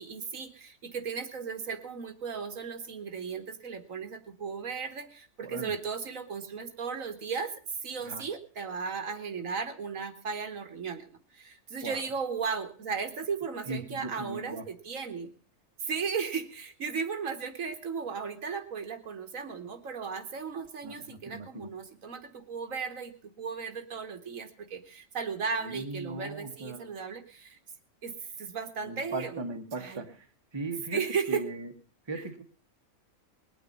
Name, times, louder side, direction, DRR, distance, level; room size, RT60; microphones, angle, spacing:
voice 1, 0.0-7.5 7.8-15.3 15.8-27.6 28.0-29.4 29.8-30.0 30.9-31.4, right 5 dB, 65° right, 8 dB, 1.6 m, -36 dB
voice 2, 5.4-5.7 8.0-8.2 11.8-12.0 13.7-14.7 20.8-21.7 25.6-27.0 28.8-30.3 30.5-31.0 31.3-31.7 32.1-32.4, right 2 dB, 20° right, 5 dB, 1.2 m, -38 dB
20.5 x 9.1 x 5.3 m, 0.39 s
omnidirectional pair, 1.5 m